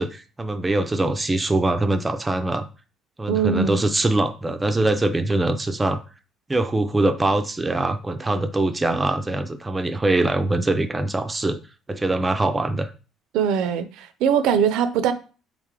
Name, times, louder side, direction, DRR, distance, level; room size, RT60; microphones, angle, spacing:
voice 1, 0.0-2.6 3.2-6.0 6.5-11.6 11.9-12.9, right 2 dB, 15° right, 0.3 m, -23 dB
voice 2, 3.3-3.8 13.3-15.1, right 7 dB, 80° right, 0.4 m, -21 dB
3.5 x 3.2 x 3.6 m
cardioid pair, 150°, 0 cm